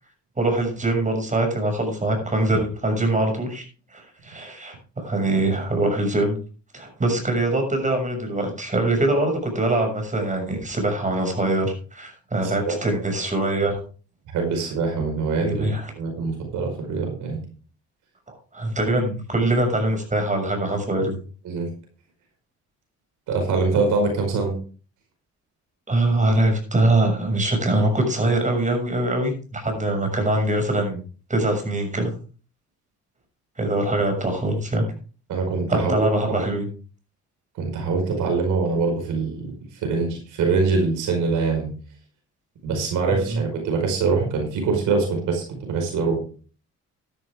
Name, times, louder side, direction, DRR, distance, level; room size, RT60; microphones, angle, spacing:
voice 1, 0.4-3.6 3.9-6.4 6.7-13.8 15.4-15.8 18.3-21.1 25.9-31.0 31.3-32.1 33.6-34.8 35.7-36.7 43.3-43.4, right 2 dB, 25° right, 4 dB, 6.6 m, -23 dB
voice 2, 12.4-12.7 14.3-17.4 21.4-21.7 23.3-24.5 35.3-36.5 37.6-41.7 42.6-46.2, right 4 dB, 85° right, 2 dB, 5.1 m, -24 dB
13.0 x 12.0 x 3.7 m, 0.39 s
cardioid pair, 90°, 30 cm